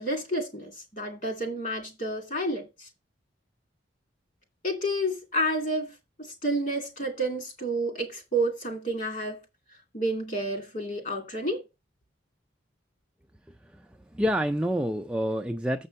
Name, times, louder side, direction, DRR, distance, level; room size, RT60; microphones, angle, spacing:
voice 1, 0.0-2.9 4.6-5.9 6.4-9.4 9.9-11.6, right 1 dB, 40° left, 2.4 m, -30 dB
voice 2, 13.5-15.9, equal, 5° right, 0.4 m, -28 dB
7.3 x 5.4 x 5.3 m
head